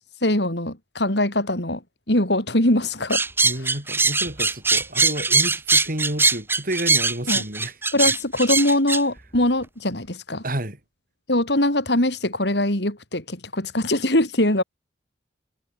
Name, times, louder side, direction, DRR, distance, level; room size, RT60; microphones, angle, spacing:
voice 1, 0.2-1.8 2.1-3.2 7.3-7.4 7.9-10.4 11.3-14.6, left 1 dB, 65° left, 5.4 m, -22 dB
sound 1, 3.1-9.0, right 3 dB, 10° right, 1.1 m, -21 dB
voice 2, 3.4-7.7 10.4-10.8, right 1 dB, 50° right, 5.1 m, -30 dB
head